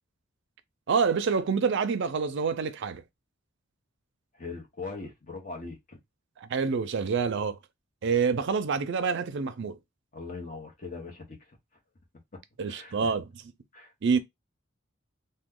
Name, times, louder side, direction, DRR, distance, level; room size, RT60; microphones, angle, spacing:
voice 1, 0.9-3.0 6.4-7.6 8.0-9.8 12.6-13.3 14.0-14.2, right 5 dB, 60° right, 0.5 m, -27 dB
voice 2, 4.3-6.0 10.1-11.6 12.7-13.1 13.7-13.9, left 3 dB, 40° left, 1.1 m, -40 dB
3.0 x 2.2 x 3.6 m
head